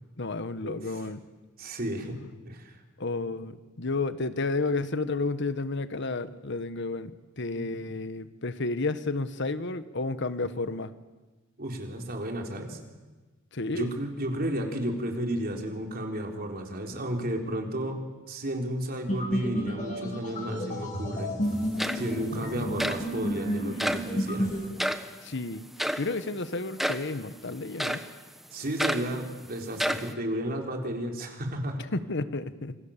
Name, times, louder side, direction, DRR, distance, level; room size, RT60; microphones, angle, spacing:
voice 1, 0.2-1.2 3.0-10.9 13.5-13.9 25.2-25.7 26.0-28.0 31.9-32.8, left 3 dB, 60° left, 12 dB, 1.3 m, -31 dB
voice 2, 1.6-2.2 2.4-2.8 7.6-7.7 11.6-12.8 13.7-18.0 18.3-21.3 21.9-24.5 28.5-31.8, right 1 dB, 50° right, 2 dB, 4.2 m, -33 dB
sound 1, 19.1-24.7, equal, 40° left, 7.8 m, -31 dB
sound 2, 21.4-21.5 21.8-22.3 22.8-23.0 23.8-24.1 24.8-25.1 25.8-26.1 26.8-27.1 27.8-28.1 28.8-29.1 29.7-30.1, equal, ahead, 1.2 m, -29 dB
27.5 x 25.5 x 7.4 m, 1.3 s
head